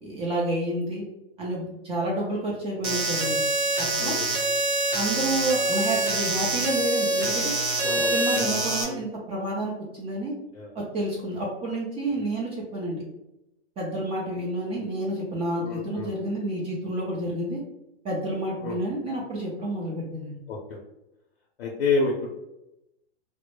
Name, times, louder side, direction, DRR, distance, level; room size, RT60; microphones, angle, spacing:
voice 1, 0.0-1.0 1.4-3.4 3.8-4.2 4.6-4.7 4.9-7.5 8.1-10.4 10.7-13.0 13.8-17.6 18.0-20.4, right 1 dB, 20° right, -4 dB, 0.4 m, -29 dB
sound 1, 2.8-8.8, right 2 dB, 45° right, 0.7 m, -25 dB
voice 2, 4.0-4.3 7.8-8.6 10.5-10.7 15.6-16.1 18.6-18.8 20.5-20.8 21.6-22.3, left 4 dB, 75° left, -2 dB, 0.6 m, -29 dB
2.1 x 2.0 x 2.9 m, 0.89 s
hypercardioid pair, 125°, 30 cm